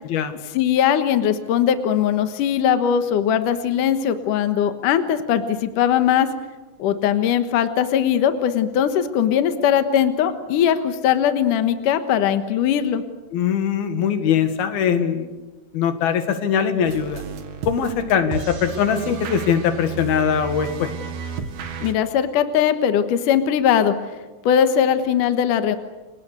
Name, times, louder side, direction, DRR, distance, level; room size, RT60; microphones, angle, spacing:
voice 1, 0.5-6.3 6.8-13.0 21.8-23.9 24.5-25.8, left 9 dB, 65° left, 9 dB, 2.7 m, -20 dB
voice 2, 13.3-15.3 15.7-17.2 17.7-20.9, left 7 dB, 85° left, 8 dB, 3.8 m, -21 dB
sound 1, 16.8-21.9, right 6 dB, 70° right, 3.7 m, -33 dB
30.0 x 24.0 x 6.8 m, 1.2 s
omnidirectional pair, 4.2 m